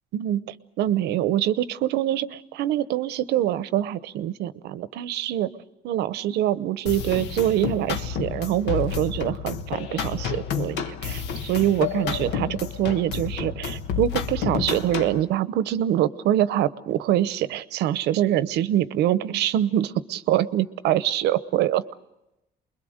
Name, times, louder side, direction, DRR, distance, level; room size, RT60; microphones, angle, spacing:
voice 1, 0.1-5.5 5.8-21.8, right 12 dB, 80° right, 15 dB, 0.9 m, -24 dB
sound 1, 6.9-15.2, left 7 dB, 85° left, 1.3 m, -30 dB
29.0 x 22.0 x 6.5 m, 0.93 s
cardioid pair, 110°, 17 cm